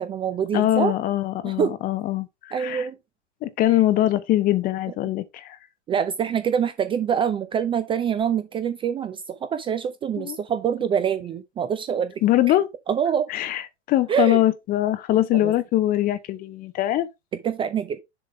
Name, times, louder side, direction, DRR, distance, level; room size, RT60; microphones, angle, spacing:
voice 1, 0.0-0.9 1.4-1.7 2.5-3.0 5.9-12.2 12.5-12.6 12.9-13.3 14.1-14.4 15.3-15.5 17.3-18.0, right 8 dB, 15° right, 0.5 m, -25 dB
voice 2, 0.5-2.9 3.4-5.6 10.2-10.4 12.2-12.7 13.3-13.6 13.9-17.1, left 14 dB, 25° left, 0.7 m, -22 dB
6.9 x 3.7 x 4.9 m
hypercardioid pair, 115°, 35 cm